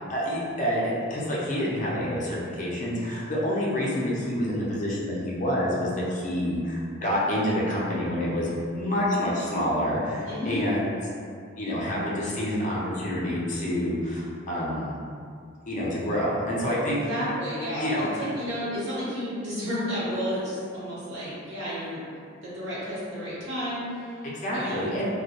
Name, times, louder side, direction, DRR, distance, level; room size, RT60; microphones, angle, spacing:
voice 1, 0.1-11.0 11.6-14.9 15.7-17.0 17.8-18.3 24.3-25.1, equal, 40° left, -6 dB, 0.5 m, -27 dB
voice 2, 10.3-10.7 16.9-22.0 22.4-24.2 24.5-25.0, equal, 60° right, -10 dB, 0.9 m, -31 dB
2.2 x 2.1 x 2.8 m, 2.3 s
head